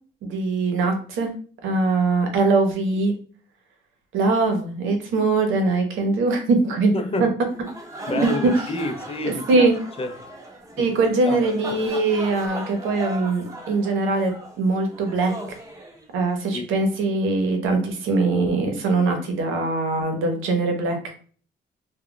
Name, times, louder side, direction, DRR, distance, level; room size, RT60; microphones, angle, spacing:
voice 1, 0.2-1.3 1.6-3.2 4.1-6.9 7.2-7.3 8.0-8.2 9.2-9.8 10.8-14.3 14.6-15.3 16.1-21.1, right 3 dB, 90° right, 0.7 m, -22 dB
voice 2, 6.9-7.3 8.1-9.7 10.0-10.2 10.8-11.0 11.3-11.4 11.7-11.8 16.5-16.7, left 2 dB, 30° left, 0.4 m, -28 dB
sound 1, 7.5-16.5, right 1 dB, 15° right, 0.7 m, -38 dB
2.2 x 2.2 x 3.7 m
cardioid pair, 90°, 20 cm